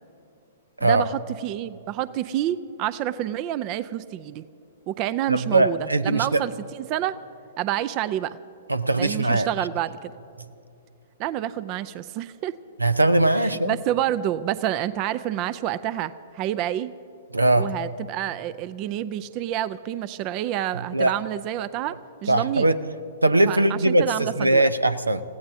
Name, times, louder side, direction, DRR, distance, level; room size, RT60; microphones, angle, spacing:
voice 1, 0.8-4.4 4.9-7.2 7.6-8.4 9.0-10.1 11.2-12.6 13.6-16.9 17.6-21.9 22.2-22.7 23.5-24.7, right 12 dB, 35° right, 15 dB, 0.5 m, -28 dB
voice 2, 5.3-6.4 8.7-9.5 12.8-13.8 17.3-17.7 20.7-21.1 22.3-22.8 23.2-25.2, right 2 dB, 90° right, 13 dB, 0.7 m, -20 dB
29.5 x 16.5 x 2.8 m, 2.7 s
figure-of-eight pair, 115°, 0 cm